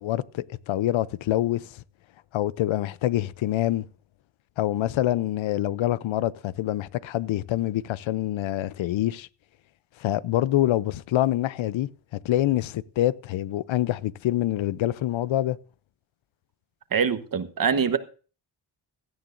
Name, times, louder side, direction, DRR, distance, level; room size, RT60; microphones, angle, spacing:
voice 1, 0.0-1.8 2.3-3.9 4.6-9.3 10.0-15.6, left 14 dB, 85° left, 0.6 m, -26 dB
voice 2, 16.9-18.0, right 6 dB, 45° right, 1.1 m, -24 dB
17.0 x 12.0 x 2.5 m
cardioid pair, 90°, 45 cm